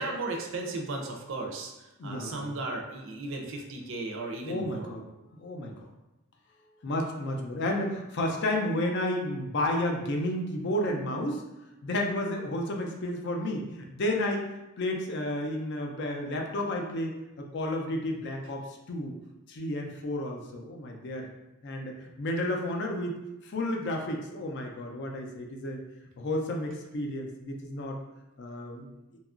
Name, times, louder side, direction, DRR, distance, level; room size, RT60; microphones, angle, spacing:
voice 1, 0.0-4.9, right 2 dB, 65° right, 1 dB, 0.4 m, -35 dB
voice 2, 2.0-2.6 4.4-5.1 5.3-5.8 6.8-11.4 11.8-19.2 19.5-21.3 21.6-23.2 23.4-25.8 26.2-28.0 28.4-28.9, left 1 dB, 55° left, 2 dB, 0.4 m, -32 dB
2.8 x 2.3 x 2.4 m, 0.96 s
head